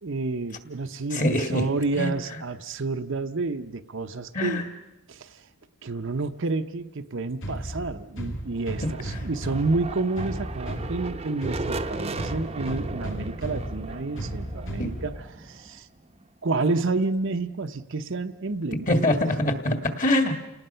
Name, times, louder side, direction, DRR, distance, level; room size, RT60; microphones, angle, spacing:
voice 1, 0.0-4.6 5.1-5.5 5.8-15.9 16.4-19.0, right 3 dB, 55° right, 8 dB, 0.7 m, -29 dB
voice 2, 1.1-1.6 1.9-2.1 4.3-4.6 14.8-14.9 18.9-20.4, left 1 dB, 35° left, 6 dB, 1.9 m, -24 dB
sound 1, 7.4-15.4, right 1 dB, 55° left, 2.6 m, -35 dB
sound 2, 8.5-16.3, right 3 dB, 25° right, 0.8 m, -37 dB
29.5 x 18.5 x 5.6 m, 0.98 s
head